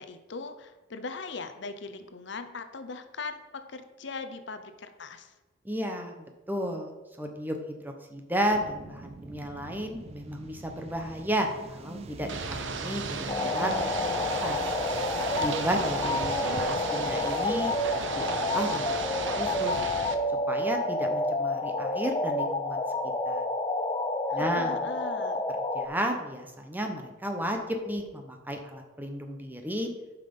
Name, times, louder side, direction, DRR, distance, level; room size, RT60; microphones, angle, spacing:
voice 1, 0.0-5.3 15.7-16.7 16.9-17.2 24.3-25.4, left 4 dB, 60° left, 9 dB, 0.7 m, -40 dB
voice 2, 5.6-6.1 6.5-6.9 7.2-13.9 14.4-14.6 15.4-17.7 18.2-19.8 20.5-22.8 23.3-23.4 24.3-24.8 25.7-29.9, equal, 10° right, 4 dB, 0.8 m, -33 dB
sound 1, 8.5-21.3, right 4 dB, 30° right, 0.3 m, -44 dB
Ocean / Boat Water vehicle, 12.3-20.1, right 4 dB, 65° right, 0.8 m, -35 dB
sound 2, 13.3-25.9, left 2 dB, 25° left, 0.5 m, -29 dB
9.0 x 5.8 x 5.3 m, 1.1 s
head